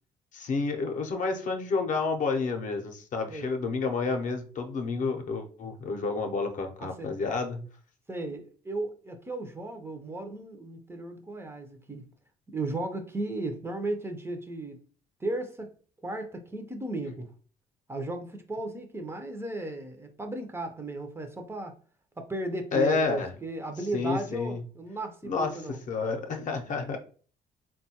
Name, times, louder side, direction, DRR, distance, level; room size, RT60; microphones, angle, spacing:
voice 1, 0.3-7.7 22.7-23.3 23.9-24.6 25.2-27.0, left 4 dB, 50° left, 0.6 m, -30 dB
voice 2, 8.1-12.1 12.5-14.8 15.2-15.7 16.0-17.3 17.9-21.8 22.2-25.8, right 2 dB, 15° right, 0.5 m, -35 dB
3.6 x 2.2 x 2.8 m
cardioid pair, 110°, 17 cm